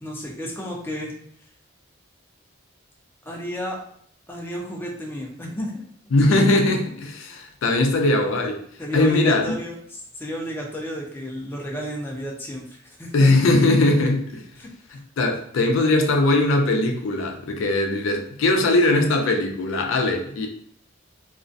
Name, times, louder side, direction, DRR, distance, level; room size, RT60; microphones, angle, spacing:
voice 1, 0.0-1.1 3.2-3.8 4.3-5.9 7.9-8.1 8.8-13.3 14.6-14.7, equal, 10° left, -2 dB, 0.5 m, -32 dB
voice 2, 6.1-8.6 8.9-9.6 13.1-14.4 14.9-20.5, left 2 dB, 75° left, 3 dB, 0.4 m, -20 dB
2.4 x 2.1 x 2.5 m, 0.64 s
head